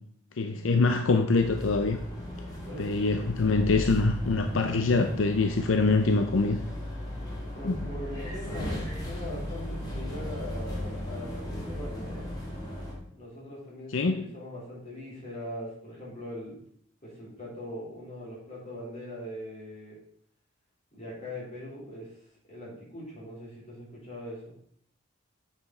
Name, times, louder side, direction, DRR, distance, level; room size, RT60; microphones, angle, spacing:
voice 1, 0.4-2.0 2.8-6.6 7.6-7.8 13.9-14.3, left 3 dB, 75° left, 5 dB, 0.6 m, -24 dB
sound 1, 1.3-12.9, left 1 dB, 20° left, 2.4 m, -36 dB
voice 2, 7.5-12.3 13.1-16.6 17.0-20.0 20.9-22.1 22.5-24.5, left 1 dB, 35° left, -6 dB, 3.9 m, -41 dB
7.9 x 6.1 x 4.3 m, 0.66 s
head